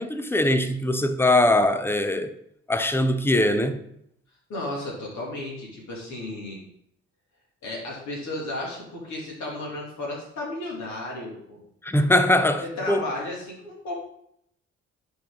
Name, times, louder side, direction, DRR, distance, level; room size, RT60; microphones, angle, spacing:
voice 1, 0.0-2.4 2.7-3.8 11.8-13.0, left 1 dB, 5° left, 0.7 m, -22 dB
voice 2, 4.5-6.6 7.6-11.6 12.6-13.9, left 1 dB, 50° left, 2.7 m, -34 dB
10.5 x 3.7 x 3.9 m
figure-of-eight pair, 45°, 36 cm